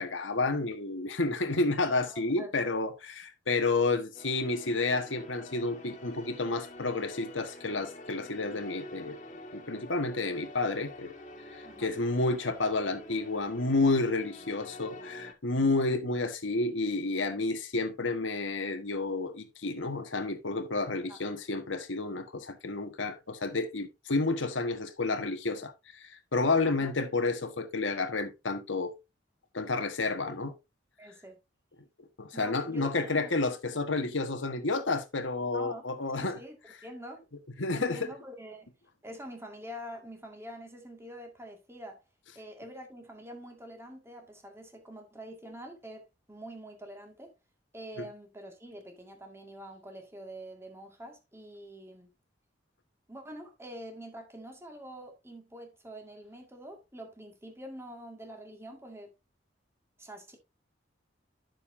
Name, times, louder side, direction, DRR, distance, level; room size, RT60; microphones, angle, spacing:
voice 1, 0.0-9.2 9.5-11.1 11.5-29.0 29.5-30.5 32.2-36.4 37.6-38.1, left 3 dB, 80° left, 1.4 m, -30 dB
voice 2, 2.0-2.7 11.6-11.9 21.1-21.2 26.6-26.9 30.2-30.3 31.0-31.4 32.3-33.4 35.5-35.8 36.2-36.6 36.8-37.2 37.7-38.7 39.0-42.0 42.4-47.3 47.7-52.1 53.1-59.1 60.0-60.4, equal, 15° right, 2.0 m, -46 dB
sound 1, 4.1-15.3, left 1 dB, 40° left, 2.1 m, -47 dB
10.5 x 6.8 x 2.6 m
head